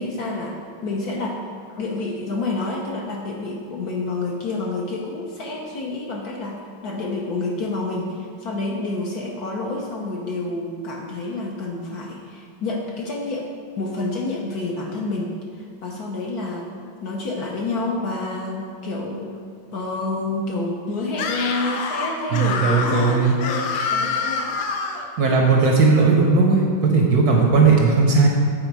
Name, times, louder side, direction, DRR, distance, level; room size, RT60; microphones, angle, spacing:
voice 1, 0.0-1.4 1.8-13.5 13.8-16.7 17.0-19.3 19.7-24.6 27.5-27.6, left 2 dB, 65° left, -2 dB, 1.0 m, -28 dB
Screaming, 21.1-25.1, left 4 dB, 85° left, 1.5 m, -26 dB
voice 2, 22.3-23.3 25.2-28.3, right 4 dB, 65° right, -1 dB, 1.0 m, -17 dB
8.8 x 4.1 x 4.6 m, 2.3 s
omnidirectional pair, 2.2 m